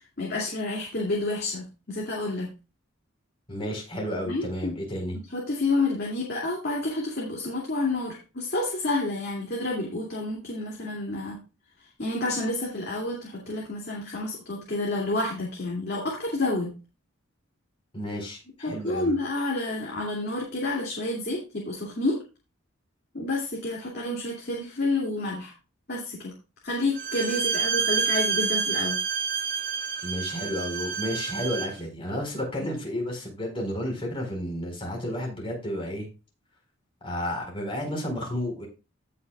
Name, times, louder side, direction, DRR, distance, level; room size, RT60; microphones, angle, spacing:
voice 1, 0.0-2.5 4.2-4.7 5.3-11.4 12.0-16.7 18.6-22.2 23.1-25.5 25.9-26.3 26.6-29.0 32.6-32.7, left 2 dB, 50° left, -3 dB, 2.7 m, -29 dB
voice 2, 3.5-5.2 17.9-19.1 30.0-36.1 37.0-38.7, equal, 25° left, 0 dB, 4.4 m, -32 dB
Bowed string instrument, 26.9-31.8, right 6 dB, 60° right, 1.3 m, -28 dB
17.5 x 5.8 x 2.4 m, 0.31 s
head